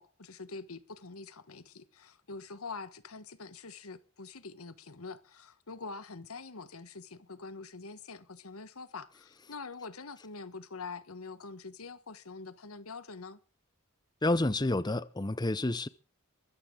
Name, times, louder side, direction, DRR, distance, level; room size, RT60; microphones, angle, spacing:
voice 1, 0.0-13.4, left 4 dB, 85° left, 1.3 m, -45 dB
voice 2, 14.2-15.9, left 2 dB, 20° left, 0.6 m, -29 dB
23.0 x 13.5 x 3.8 m
head